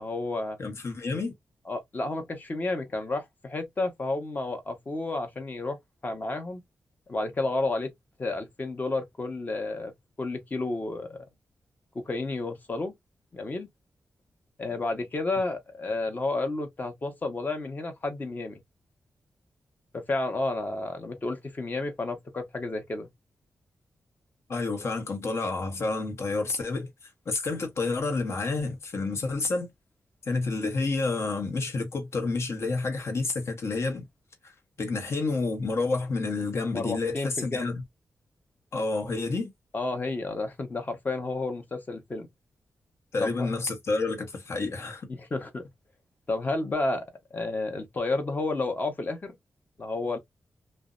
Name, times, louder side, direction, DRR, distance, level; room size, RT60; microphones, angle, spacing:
voice 1, 0.0-0.6 1.7-5.8 6.0-6.6 7.1-7.9 8.2-9.9 10.2-11.2 11.9-12.9 13.3-13.7 14.6-18.6 19.9-23.1 36.7-37.7 39.7-42.3 43.2-43.5 45.1-45.6 46.3-47.0 47.3-49.3 49.8-50.2, left 2 dB, 35° left, 0.9 m, -31 dB
voice 2, 0.6-1.3 24.5-26.9 27.3-29.7 30.2-34.0 34.4-37.8 38.7-39.5 43.1-45.1, left 3 dB, 60° left, 1.0 m, -29 dB
2.6 x 2.1 x 2.4 m
cardioid pair, 85°, 5 cm